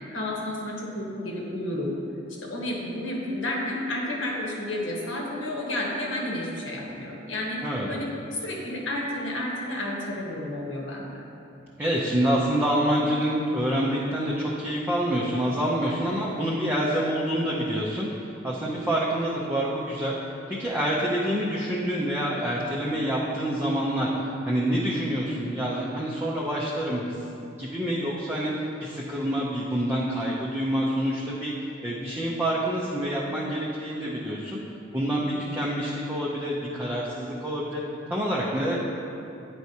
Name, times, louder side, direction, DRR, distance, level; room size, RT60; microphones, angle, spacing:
voice 1, 0.1-2.0 2.4-7.6 7.9-11.2 15.9-16.0 35.2-35.5, left 1 dB, 70° left, -2 dB, 1.1 m, -31 dB
voice 2, 11.8-28.5 28.8-31.5 31.8-34.6 34.9-37.8 38.1-38.8, equal, 10° right, -6 dB, 0.5 m, -27 dB
9.3 x 4.6 x 2.8 m, 2.7 s
head